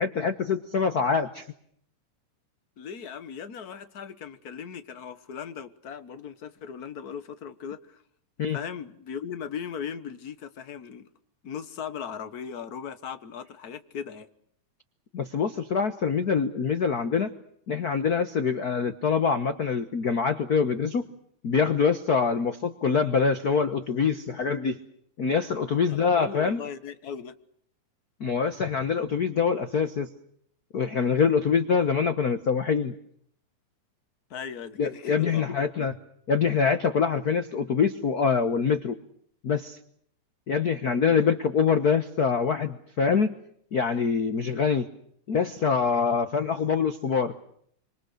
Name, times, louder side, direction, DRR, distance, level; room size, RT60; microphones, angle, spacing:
voice 1, 0.0-1.4 8.4-8.6 15.1-17.3 17.7-21.1 21.4-24.8 25.2-26.6 28.2-30.1 30.7-32.9 34.8-36.0 36.3-39.0 39.4-39.8 40.5-43.3 43.7-44.9 45.3-47.3, left 5 dB, 70° left, 0.9 m, -25 dB
voice 2, 2.8-8.0 8.5-11.1 11.4-14.3 25.9-27.4 34.3-35.4 35.8-35.9, left 7 dB, 50° left, 1.2 m, -38 dB
26.0 x 26.0 x 6.6 m
omnidirectional pair, 3.5 m